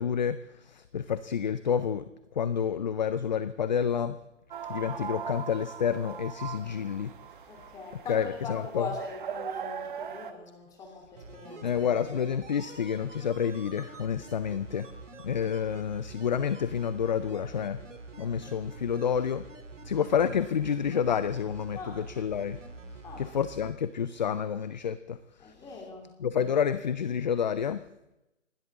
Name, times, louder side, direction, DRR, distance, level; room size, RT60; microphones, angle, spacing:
voice 1, 0.0-2.1 2.4-4.2 4.7-7.1 8.1-8.9 11.6-14.9 15.2-17.8 18.2-19.4 19.8-22.6 23.2-25.5 26.2-27.8, left 7 dB, 35° left, 14 dB, 0.5 m, -29 dB
sound 1, 4.5-10.3, right 8 dB, 40° right, 1.2 m, -40 dB
voice 2, 7.5-11.7 21.7-22.0 23.0-23.3 25.4-26.1, left 3 dB, 10° left, 0 dB, 2.9 m, -41 dB
sound 2, 11.1-23.7 24.0-24.1, right 3 dB, 75° right, 3.2 m, -46 dB
29.5 x 12.0 x 3.6 m, 0.94 s
hypercardioid pair, 150°, 38 cm